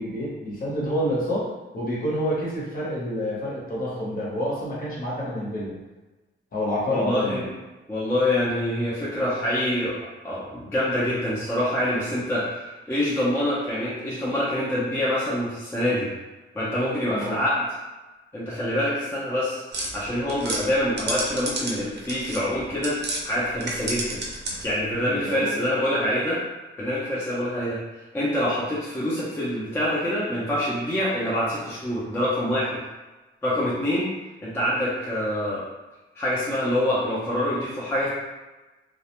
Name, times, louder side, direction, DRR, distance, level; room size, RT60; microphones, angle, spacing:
voice 1, 0.0-5.8 6.5-7.5 17.1-17.4 25.1-25.5, equal, 45° left, -6 dB, 0.8 m, -28 dB
voice 2, 6.9-7.5 7.9-16.1 16.5-17.6 18.3-19.6 19.9-24.2 24.6-26.4 26.8-27.8 28.1-32.8 33.4-34.1 34.4-35.6 36.2-38.1, left 1 dB, 10° left, -8 dB, 0.4 m, -25 dB
sound 1, 19.7-23.2 23.6-24.8, right 2 dB, 55° right, 0.5 m, -31 dB
2.3 x 2.1 x 2.8 m, 1.2 s
wide cardioid pair, 155°, 20 cm